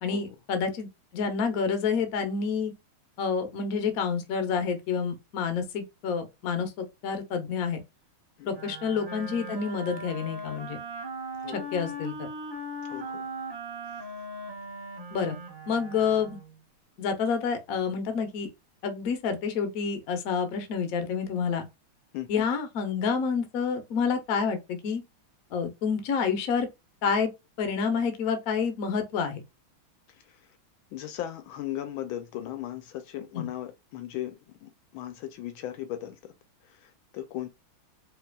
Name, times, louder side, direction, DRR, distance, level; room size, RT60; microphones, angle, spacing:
voice 1, 0.0-0.9 1.1-2.7 3.2-7.8 8.4-10.8 11.5-12.3 15.1-15.4 15.7-16.4 17.0-18.5 18.8-21.7 22.3-25.0 25.5-26.7 27.0-27.3 27.6-29.4 33.3-33.5, left 6 dB, 60° left, 1.0 m, -28 dB
Wind instrument woodwind instrument, 8.5-16.6, right 1 dB, 15° right, 1.4 m, -39 dB
voice 2, 12.8-13.3 13.9-14.3 22.1-22.5 30.1-30.6 30.9-36.3 36.6-37.5, left 12 dB, 80° left, 1.3 m, -38 dB
4.6 x 3.2 x 2.3 m
omnidirectional pair, 2.3 m